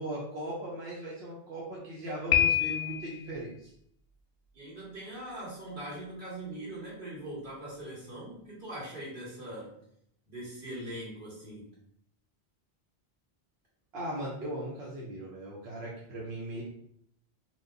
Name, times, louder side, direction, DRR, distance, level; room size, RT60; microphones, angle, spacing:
voice 1, 0.0-3.7 13.9-16.6, right 1 dB, 85° right, -5 dB, 1.0 m, -38 dB
Piano, 2.3-3.3, left 11 dB, 60° left, 0.6 m, -26 dB
voice 2, 4.5-9.7 10.3-11.7, right 1 dB, 50° right, -9 dB, 1.9 m, -41 dB
4.4 x 2.1 x 2.6 m, 0.71 s
omnidirectional pair, 1.1 m